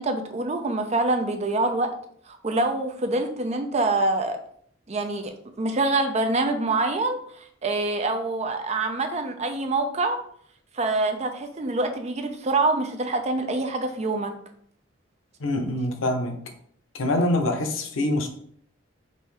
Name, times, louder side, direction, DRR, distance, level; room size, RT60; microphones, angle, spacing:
voice 1, 0.0-1.9 2.3-4.4 4.9-10.2 10.7-14.3, right 2 dB, 35° right, 6 dB, 0.5 m, -25 dB
voice 2, 15.4-16.5 16.9-18.3, left 1 dB, 90° left, 5 dB, 0.7 m, -25 dB
5.3 x 2.7 x 3.2 m, 0.63 s
head